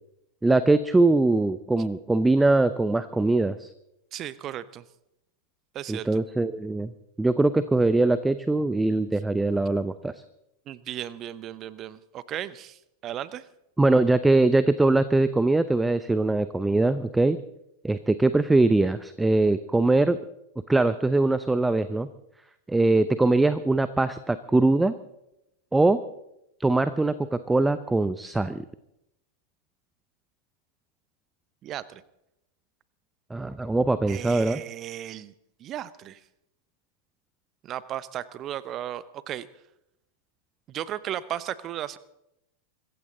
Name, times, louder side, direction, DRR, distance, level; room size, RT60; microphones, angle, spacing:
voice 1, 0.4-3.7 5.9-6.9 7.2-10.1 13.8-17.4 17.8-20.2 20.7-22.1 22.7-24.9 25.7-26.0 26.6-28.6 33.3-34.6, right 2 dB, 10° right, 14 dB, 0.7 m, -22 dB
voice 2, 4.1-4.8 5.7-6.2 10.7-13.4 31.6-32.0 34.1-35.3 35.6-36.2 37.6-39.5 40.7-42.0, right 11 dB, 30° right, 17 dB, 0.9 m, -35 dB
25.0 x 15.0 x 3.9 m, 0.85 s
figure-of-eight pair, 90°, 0 cm